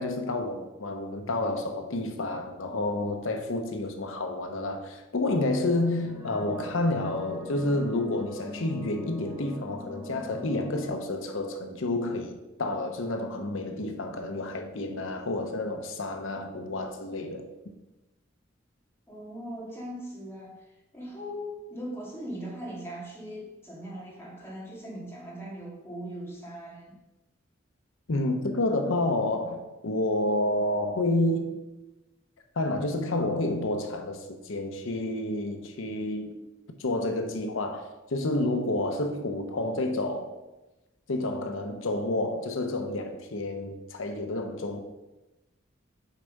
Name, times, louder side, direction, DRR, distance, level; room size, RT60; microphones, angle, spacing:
voice 1, 0.0-17.5 28.1-31.6 32.6-36.4 36.8-40.3 41.1-44.8, left 2 dB, 75° left, 0.8 m, -29 dB
sound 1, 5.6-10.9, left 2 dB, 10° right, 0.8 m, -42 dB
voice 2, 19.1-27.0, equal, 10° left, 1.8 m, -40 dB
6.8 x 4.5 x 5.3 m
head